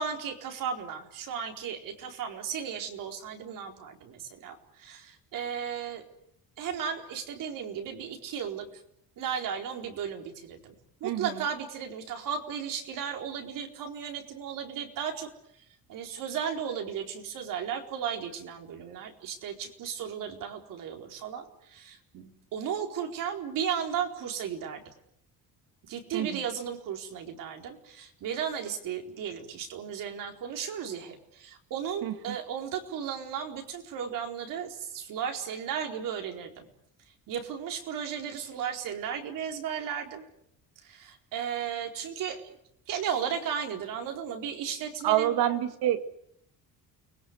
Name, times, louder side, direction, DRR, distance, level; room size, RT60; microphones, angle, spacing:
voice 1, 0.0-6.0 6.6-8.8 9.2-10.8 11.0-15.3 15.6-24.9 25.9-36.7 37.3-40.3 40.8-42.6 42.9-45.4, right 7 dB, 60° right, 4 dB, 4.3 m, -35 dB
voice 2, 32.0-32.4 45.0-46.1, right 12 dB, 80° right, 9 dB, 2.3 m, -27 dB
30.0 x 21.5 x 8.0 m, 0.73 s
cardioid pair, 180°, 36 cm